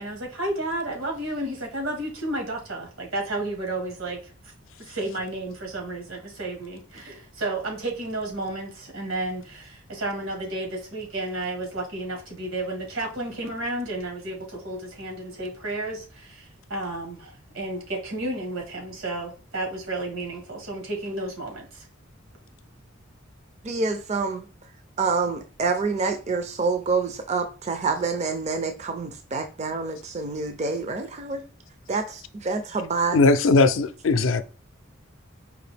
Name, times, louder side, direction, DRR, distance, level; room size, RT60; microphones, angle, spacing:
voice 1, 0.0-4.2 4.8-21.9, right 2 dB, 80° right, 1.6 m, -32 dB
voice 2, 23.6-24.4 25.0-31.4 31.9-32.0 32.4-33.2, right 4 dB, 35° right, 0.4 m, -27 dB
voice 3, 33.1-34.4, left 3 dB, 70° left, 0.4 m, -19 dB
5.0 x 2.7 x 3.3 m
head